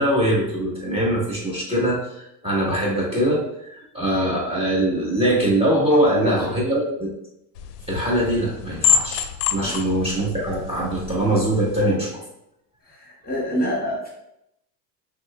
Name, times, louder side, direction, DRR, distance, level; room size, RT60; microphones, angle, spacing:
voice 1, 0.0-7.1 7.9-12.2, right 1 dB, 10° right, -4 dB, 1.7 m, -22 dB
voice 2, 5.9-6.4 9.6-9.9 12.8-14.1, equal, 20° left, -4 dB, 1.4 m, -27 dB
sound 1, 7.6-11.8, left 7 dB, 75° left, 0.6 m, -27 dB
6.0 x 3.4 x 2.4 m, 0.82 s
supercardioid pair, 95°, 48 cm